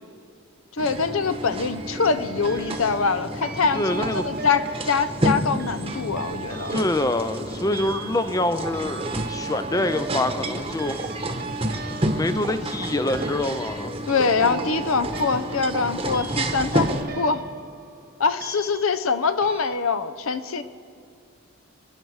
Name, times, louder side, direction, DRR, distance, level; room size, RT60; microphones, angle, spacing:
voice 1, 0.7-6.8 14.1-17.4 18.2-20.6, left 5 dB, 75° left, 12 dB, 0.7 m, -24 dB
sound 1, 0.8-17.0, right 1 dB, 25° right, 1.0 m, -30 dB
sound 2, 1.4-1.7 2.4-3.1 3.4-19.1 19.4-19.7, right 5 dB, 45° right, 0.9 m, -39 dB
voice 2, 3.7-4.2 6.7-11.0 12.1-13.9, left 1 dB, 15° left, 10 dB, 0.4 m, -25 dB
29.5 x 10.0 x 4.8 m, 2.3 s
head